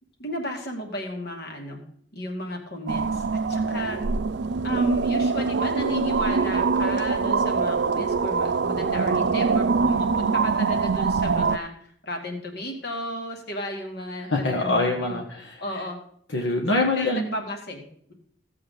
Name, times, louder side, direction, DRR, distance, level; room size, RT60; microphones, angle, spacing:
voice 1, 0.2-1.8 2.1-4.0 4.6-15.2 15.6-16.0 16.7-18.1, left 1 dB, 60° left, 2 dB, 2.3 m, -34 dB
sound 1, 2.9-11.6, right 4 dB, 65° right, 0.5 m, -24 dB
voice 2, 14.3-15.8 16.3-17.4, left 2 dB, 80° left, 0 dB, 1.5 m, -25 dB
16.0 x 7.6 x 3.9 m, 0.65 s
head